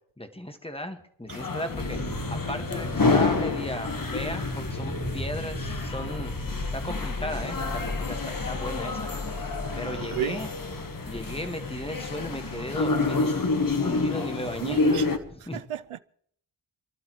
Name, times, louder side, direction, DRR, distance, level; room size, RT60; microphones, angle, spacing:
voice 1, 0.2-6.3 6.7-10.5 11.1-13.4 13.7-14.8 15.3-15.6, left 1 dB, 10° left, 1.7 m, -36 dB
sound 1, 1.3-15.2, left 3 dB, 40° left, 1.5 m, -29 dB
sound 2, 1.7-15.3, left 1 dB, 70° left, 6.6 m, -37 dB
voice 2, 9.9-10.4 14.6-15.1 15.5-16.0, right 10 dB, 85° right, 0.6 m, -32 dB
29.5 x 11.5 x 3.1 m
wide cardioid pair, 80°, 49 cm